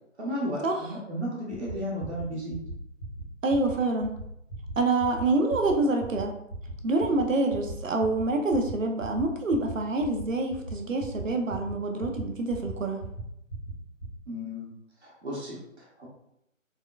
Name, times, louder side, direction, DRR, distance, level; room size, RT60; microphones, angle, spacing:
voice 1, 0.2-2.6 14.3-14.7 15.0-16.1, equal, 55° right, -4 dB, 1.0 m, -34 dB
sound 1, 1.5-1.7 2.0-2.2 2.5-2.7 3.0-3.2 3.5-3.7 4.0-4.2 4.5-4.7 5.0-5.2 5.5-5.7 6.0-6.2 6.5-6.7 7.0-7.2 7.5-7.7 8.0-8.2 8.5-8.7 9.0-9.2 9.5-9.7 10.0-10.2 10.5-10.7 11.0-11.2 11.5-11.7 12.0-12.2 12.5-12.7 13.0-13.2 13.5-13.7 14.0-14.2, right 3 dB, 40° left, 0.8 m, -37 dB
voice 2, 3.4-4.1 4.8-6.3 6.8-13.0, right 2 dB, 75° right, 3 dB, 0.6 m, -26 dB
3.5 x 2.1 x 2.3 m, 0.79 s
figure-of-eight pair, 155°, 39 cm